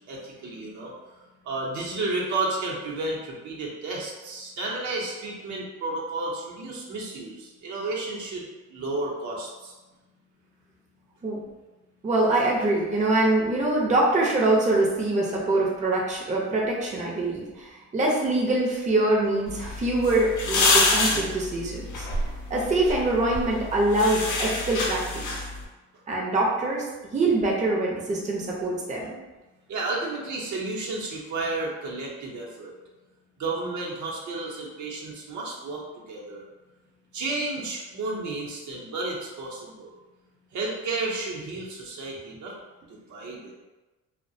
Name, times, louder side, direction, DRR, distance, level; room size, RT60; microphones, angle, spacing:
voice 1, 0.1-0.9 1.4-8.4 8.7-9.7 29.7-32.7 33.4-36.4 37.1-40.0 40.5-42.5 43.1-43.5, right 2 dB, 70° right, -3 dB, 0.7 m, -32 dB
voice 2, 12.0-17.7 17.9-22.1 22.5-25.2 26.1-26.9 27.1-29.1, right 2 dB, 25° right, -3 dB, 0.5 m, -24 dB
sound 1, 19.5-25.6, left 2 dB, 80° left, 0.5 m, -27 dB
2.3 x 2.1 x 2.6 m, 1.1 s
cardioid pair, 90°, 30 cm